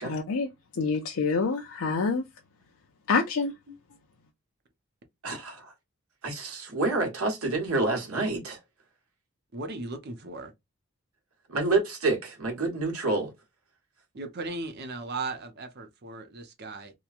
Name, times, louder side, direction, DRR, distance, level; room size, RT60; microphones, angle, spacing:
voice 1, 0.0-0.5 0.8-2.2 3.1-3.5, left 4 dB, 70° left, 0.5 m, -26 dB
voice 2, 5.2-5.7 6.2-8.6 11.5-13.3, right 3 dB, 80° right, 1.2 m, -28 dB
voice 3, 9.5-10.5 14.2-16.9, right 3 dB, 50° right, 0.7 m, -37 dB
3.0 x 2.2 x 2.3 m
head